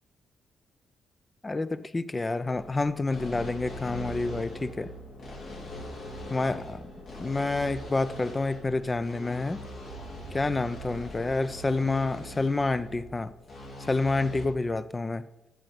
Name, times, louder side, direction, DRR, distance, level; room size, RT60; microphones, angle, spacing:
voice 1, 1.4-4.9 6.3-6.9 7.2-9.6 10.3-13.3 13.9-15.3, left 3 dB, 20° left, 0.5 m, -28 dB
sound 1, 2.5-14.5, equal, 65° left, 4.1 m, -41 dB
14.0 x 6.6 x 5.9 m
cardioid pair, 110°, 0 cm